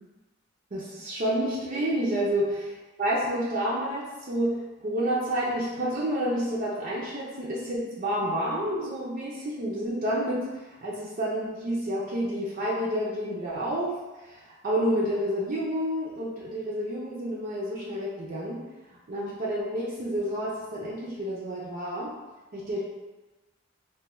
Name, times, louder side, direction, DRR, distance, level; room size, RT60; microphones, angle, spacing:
voice 1, 0.7-2.5 3.0-10.5 10.8-13.9 14.2-18.6 19.1-22.1 22.5-22.8, equal, 50° right, -6 dB, 0.5 m, -29 dB
3.3 x 2.2 x 3.0 m, 1.2 s
head